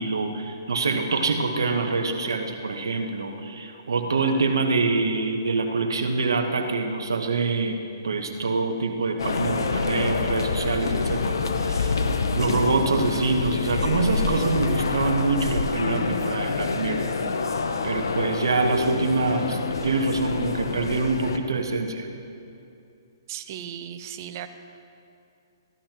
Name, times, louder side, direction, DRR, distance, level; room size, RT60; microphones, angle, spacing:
voice 1, 0.0-7.8 8.0-11.9 12.3-17.1 17.8-22.1, right 3 dB, 80° right, 4 dB, 1.2 m, -25 dB
sound 1, 9.2-21.4, left 4 dB, 75° left, 0.8 m, -27 dB
voice 2, 23.3-24.5, right 10 dB, 45° right, 9 dB, 0.7 m, -36 dB
15.0 x 11.5 x 3.0 m, 2.6 s
hypercardioid pair, 135°, 2 cm